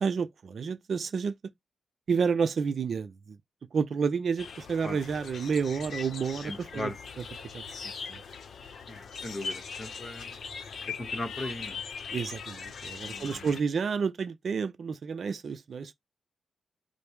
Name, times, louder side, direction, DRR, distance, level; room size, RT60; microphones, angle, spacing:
voice 1, 0.0-1.3 2.1-3.1 3.7-6.9 7.5-7.6 8.1-8.2 12.1-15.9, right 6 dB, 50° right, 0.5 m, -30 dB
sound 1, 4.4-13.6, left 5 dB, 55° left, 0.6 m, -40 dB
voice 2, 6.4-7.0 8.9-10.4 11.0-11.8 13.0-13.6, left 2 dB, 25° left, 1.0 m, -38 dB
5.1 x 2.0 x 4.5 m
wide cardioid pair, 150°, 0 cm